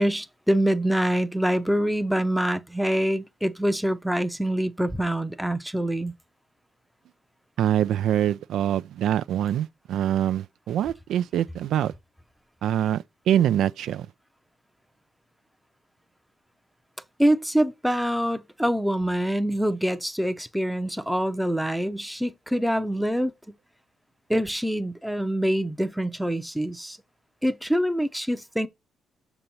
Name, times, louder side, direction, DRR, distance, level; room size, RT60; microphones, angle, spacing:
voice 1, 0.0-6.1 17.2-23.3 24.3-27.0 27.4-28.7, equal, ahead, 0.6 m, -25 dB
voice 2, 7.6-11.9 12.6-14.1, right 10 dB, 75° right, 0.3 m, -24 dB
6.7 x 2.9 x 5.4 m
cardioid pair, 90°, 0 cm